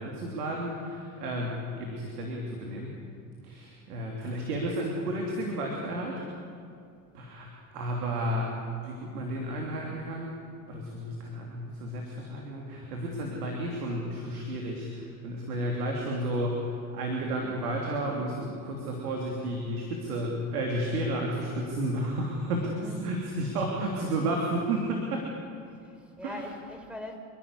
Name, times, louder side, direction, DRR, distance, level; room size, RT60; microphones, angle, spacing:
voice 1, 0.0-2.9 3.4-6.2 7.1-8.5 8.8-10.3 10.7-25.3 26.2-26.4, right 1 dB, 85° right, 0 dB, 3.3 m, -32 dB
voice 2, 22.6-23.0 25.8-27.2, left 1 dB, 5° right, 4 dB, 4.8 m, -41 dB
27.0 x 12.0 x 10.0 m, 2.4 s
hypercardioid pair, 80°, 45 cm